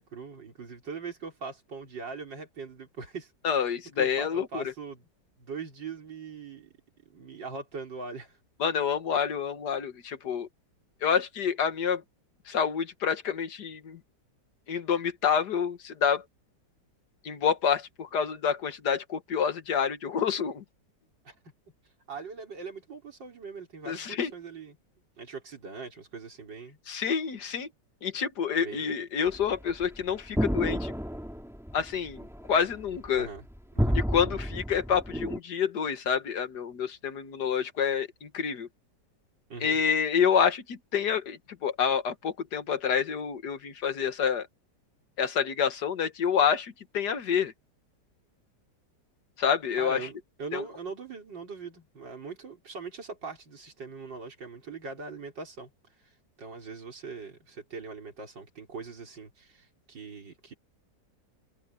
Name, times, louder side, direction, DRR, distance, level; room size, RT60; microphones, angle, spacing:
voice 1, 0.0-3.3 4.0-5.1 5.4-6.7 7.1-8.4 21.2-21.3 22.1-24.8 25.2-26.8 28.6-28.9 33.1-33.4 33.7-34.0 39.5-39.8 49.8-55.7 56.0-56.1 56.4-60.5, right 4 dB, 80° right, 4.7 m, -41 dB
voice 2, 3.4-4.6 8.6-10.5 11.0-12.0 12.5-14.0 14.7-16.2 17.2-20.6 23.9-24.3 26.9-27.7 28.0-30.9 31.7-32.2 32.5-33.3 34.0-38.7 39.6-44.5 45.2-47.5 49.4-50.1 50.5-50.6, left 7 dB, 65° left, 2.0 m, -28 dB
sound 1, 29.3-35.4, equal, ahead, 3.5 m, -31 dB
open air
omnidirectional pair, 1.9 m